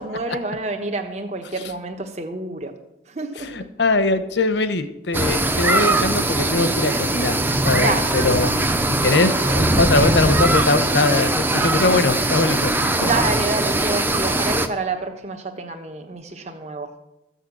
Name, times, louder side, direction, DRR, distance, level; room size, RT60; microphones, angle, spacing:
voice 1, 0.0-2.7 3.1-3.7 7.7-8.2 9.0-9.3 13.0-16.9, right 2 dB, 35° right, 4 dB, 1.1 m, -28 dB
voice 2, 3.4-7.4 7.6-13.1, left 3 dB, 75° left, 10 dB, 1.0 m, -21 dB
sound 1, 5.1-14.7, right 2 dB, 10° right, 0.6 m, -21 dB
14.0 x 6.7 x 7.7 m, 0.92 s
head